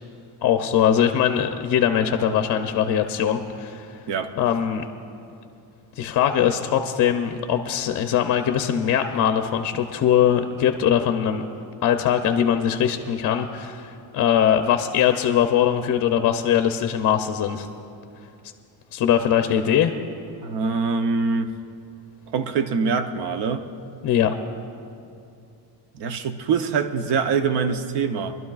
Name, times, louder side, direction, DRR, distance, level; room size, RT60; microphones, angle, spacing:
voice 1, 0.4-3.9 4.4-4.8 6.0-11.4 11.8-17.7 18.9-19.9 24.0-24.3, left 9 dB, 45° left, 7 dB, 0.5 m, -21 dB
voice 2, 20.4-21.5 22.3-23.6 25.9-28.4, right 5 dB, 65° right, 8 dB, 0.8 m, -24 dB
23.5 x 12.0 x 2.4 m, 2.5 s
cardioid pair, 150°, 43 cm